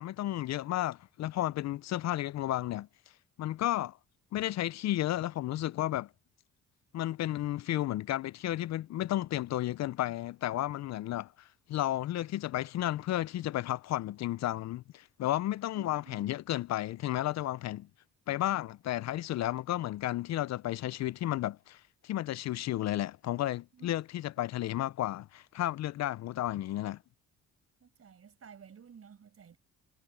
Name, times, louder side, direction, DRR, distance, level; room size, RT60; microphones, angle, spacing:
voice 1, 0.0-2.9 3.4-4.0 4.3-6.1 6.9-17.9 18.3-27.0, left 14 dB, 60° left, 0.5 m, -33 dB
voice 2, 15.7-16.3 23.7-24.0 24.4-24.5 27.8-29.6, right 7 dB, 50° right, 6.1 m, -54 dB
cardioid pair, 90°, 30 cm